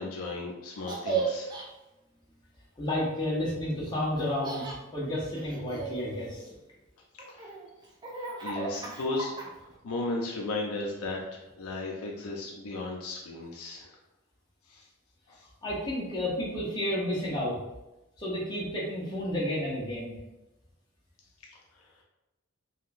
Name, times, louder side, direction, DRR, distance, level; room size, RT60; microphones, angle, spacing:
voice 1, 0.0-1.5 7.3-7.5 8.2-13.9 14.7-14.8 15.3-15.4, left 2 dB, 85° left, -1 dB, 0.5 m, -35 dB
Laughter, 0.8-1.7 4.2-4.8 5.4-6.6 7.2-9.8, right 5 dB, 20° right, 0.3 m, -35 dB
voice 2, 2.8-4.7 4.9-6.4 15.6-17.6 18.2-20.1, left 1 dB, 20° left, -5 dB, 0.8 m, -31 dB
3.6 x 2.2 x 2.5 m, 0.97 s
head